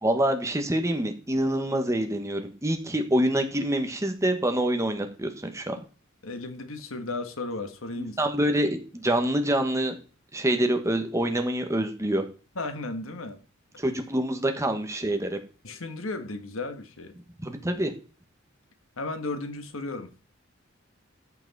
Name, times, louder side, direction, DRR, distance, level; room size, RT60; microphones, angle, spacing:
voice 1, 0.0-5.7 8.0-9.9 10.3-12.2 13.8-15.4 17.4-17.9, right 1 dB, 15° right, 1.6 m, -26 dB
voice 2, 6.2-8.2 12.5-13.4 15.6-17.2 19.0-20.1, left 2 dB, 80° left, 1.5 m, -34 dB
13.5 x 6.0 x 4.2 m
head